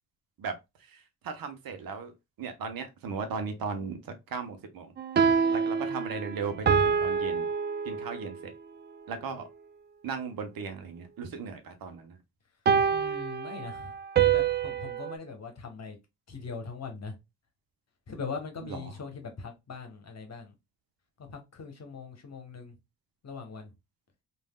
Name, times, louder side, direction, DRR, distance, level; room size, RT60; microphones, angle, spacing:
voice 1, 0.4-2.1 2.4-4.9 5.5-7.5 7.8-8.5 9.1-9.5 10.0-12.2 18.6-18.8, right 5 dB, 60° right, 0.9 m, -37 dB
sound 1, 5.0-8.4 12.7-15.2, right 6 dB, 30° right, 0.4 m, -26 dB
voice 2, 12.9-16.0 16.3-17.2 18.1-20.5 21.2-22.8 23.2-23.7, left 5 dB, 40° left, 1.1 m, -41 dB
3.3 x 2.5 x 2.2 m
supercardioid pair, 50°, 39 cm